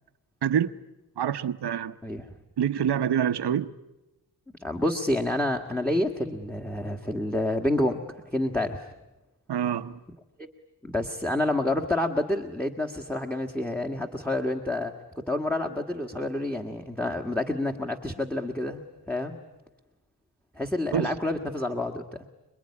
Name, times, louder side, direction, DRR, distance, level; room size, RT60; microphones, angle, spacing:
voice 1, 0.4-0.7 1.2-1.9 2.6-3.7 9.5-10.0 20.9-21.1, right 9 dB, 80° right, 1.0 m, -26 dB
voice 2, 2.0-2.3 4.6-8.9 10.4-10.5 10.8-14.9 15.3-19.4 20.5-22.2, left 1 dB, 5° left, 1.7 m, -28 dB
27.0 x 22.0 x 9.8 m
wide cardioid pair, 90°, 39 cm